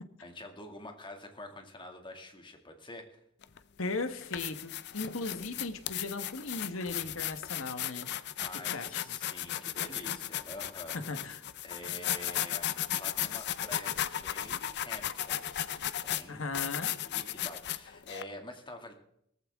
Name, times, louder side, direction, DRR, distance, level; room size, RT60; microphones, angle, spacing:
voice 1, 0.2-3.2 8.4-11.3 11.6-18.9, left 1 dB, 25° left, 4 dB, 2.3 m, -47 dB
sound 1, 3.4-3.6 4.1-18.2, left 11 dB, 55° left, 0.6 m, -35 dB
voice 2, 3.8-8.1 8.7-9.0 11.1-11.4 16.3-16.9, left 3 dB, 70° left, 9 dB, 1.4 m, -37 dB
17.5 x 14.5 x 3.6 m, 0.72 s
head